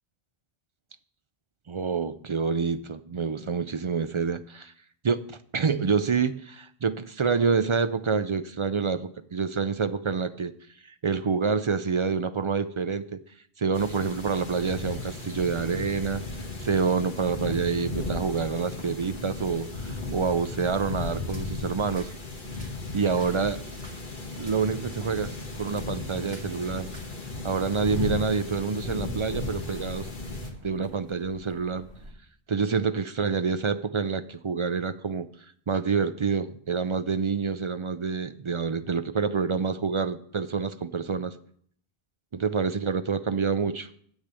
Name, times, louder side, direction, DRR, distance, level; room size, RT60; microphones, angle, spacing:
voice 1, 1.7-4.7 5.0-10.5 10.8-13.2 13.6-16.2 16.6-22.1 22.9-23.6 24.4-26.9 27.4-30.1 30.6-31.9 32.5-35.3 35.7-41.3 42.4-43.9, right 5 dB, 50° right, 11 dB, 0.4 m, -27 dB
sound 1, 13.7-30.5, left 3 dB, 50° left, 1.8 m, -36 dB
sound 2, 14.2-32.1, right 1 dB, 85° right, 2.4 m, -49 dB
8.2 x 6.4 x 8.2 m, 0.62 s
omnidirectional pair, 1.0 m